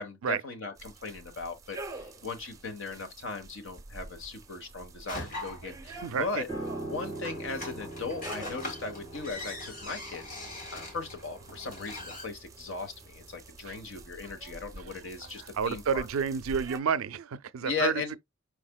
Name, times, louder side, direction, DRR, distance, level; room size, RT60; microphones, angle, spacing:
voice 1, 0.0-6.5 6.8-10.3 10.7-16.1 17.6-18.2, left 4 dB, 65° left, 1.1 m, -37 dB
sound 1, 0.8-16.8, right 2 dB, 15° right, 0.5 m, -48 dB
sound 2, 5.1-12.2, left 1 dB, 40° left, 1.8 m, -42 dB
voice 2, 6.0-6.4 13.7-13.8 15.5-18.0, right 6 dB, 80° right, 0.4 m, -30 dB
Piano, 6.5-15.9 16.1-16.4, right 2 dB, 20° left, 2.9 m, -43 dB
4.8 x 4.2 x 2.2 m
head